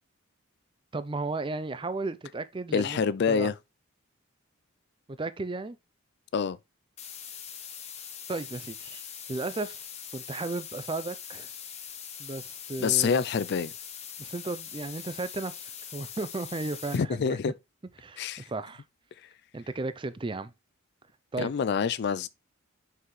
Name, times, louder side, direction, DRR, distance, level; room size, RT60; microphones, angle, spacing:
voice 1, 0.9-3.0 3.3-3.5 5.1-5.8 8.3-9.9 10.1-11.5 12.2-13.2 14.2-17.4 18.0-18.8 19.5-20.5 21.3-21.5, right 3 dB, 25° right, 0.4 m, -34 dB
voice 2, 2.7-3.5 6.3-6.6 12.8-13.7 16.9-17.5 18.2-18.5 19.2-19.3 21.4-22.3, left 6 dB, 50° left, 0.4 m, -26 dB
sound 1, 7.0-17.0, left 8 dB, 30° left, 0.9 m, -42 dB
5.7 x 5.6 x 3.2 m
head